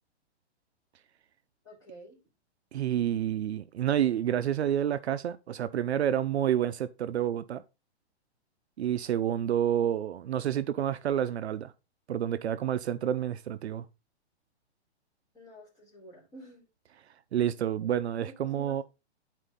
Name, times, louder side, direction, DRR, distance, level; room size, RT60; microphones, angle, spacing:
voice 1, 1.6-2.2 15.3-16.6 17.8-17.9 18.5-18.8, right 1 dB, 10° left, 3.9 m, -50 dB
voice 2, 2.7-7.6 8.8-11.7 12.1-13.9 17.3-18.8, right 10 dB, 70° right, 0.6 m, -29 dB
10.0 x 4.5 x 3.8 m
hypercardioid pair, 170°, 34 cm